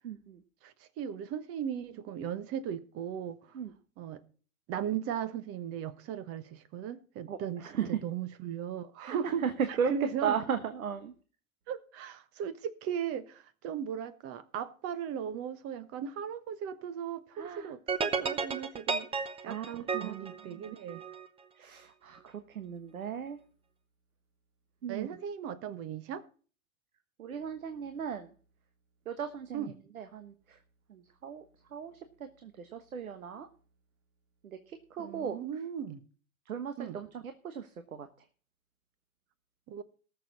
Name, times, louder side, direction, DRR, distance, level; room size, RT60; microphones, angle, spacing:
voice 1, 0.0-0.4 3.5-3.7 7.3-8.0 9.0-9.5 9.8-9.9 10.2-11.1 17.4-17.7 19.5-20.1 20.5-20.7 21.6-23.4 24.8-25.1 27.2-28.3 29.1-30.6 30.9-31.4 31.7-31.9 32.4-33.5 34.4-35.4 36.5-38.1, right 7 dB, 75° right, 1.3 m, -37 dB
voice 2, 0.6-3.6 4.0-4.2 4.7-10.4 11.7-19.1 19.4-21.0 24.9-26.2 29.5-29.7 35.0-36.0 36.8-37.0 39.7-39.8, right 8 dB, 35° right, 1.2 m, -37 dB
sound 1, 17.9-21.3, right 5 dB, 15° right, 0.9 m, -33 dB
19.0 x 6.9 x 4.0 m
hypercardioid pair, 105°, 42 cm